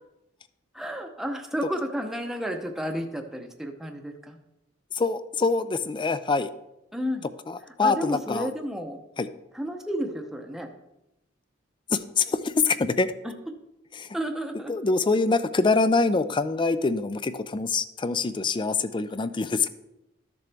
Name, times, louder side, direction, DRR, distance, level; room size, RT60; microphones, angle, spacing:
voice 1, 0.7-4.4 6.9-7.3 7.6-9.0 9.5-10.7 13.2-13.3 14.1-14.7, equal, ahead, 4 dB, 0.7 m, -32 dB
voice 2, 5.0-6.5 7.8-8.5 9.2-9.3 11.9-13.1 14.0-14.1 14.7-19.7, left 3 dB, 25° left, 13 dB, 0.4 m, -24 dB
13.0 x 6.8 x 3.4 m, 0.90 s
head